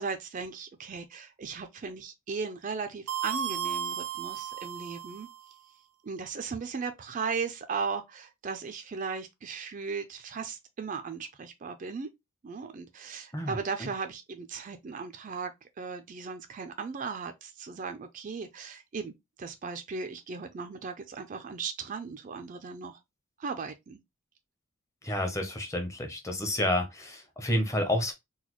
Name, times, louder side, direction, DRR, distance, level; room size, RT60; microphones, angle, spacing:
voice 1, 0.0-5.3 6.0-12.1 12.4-15.5 15.8-23.0 23.4-24.0, right 5 dB, 35° right, 0.3 m, -37 dB
sound 1, 3.1-5.4, right 8 dB, 90° right, 0.5 m, -34 dB
voice 2, 13.3-13.9 25.0-28.1, left 1 dB, 15° left, 0.6 m, -30 dB
4.0 x 2.2 x 2.9 m
head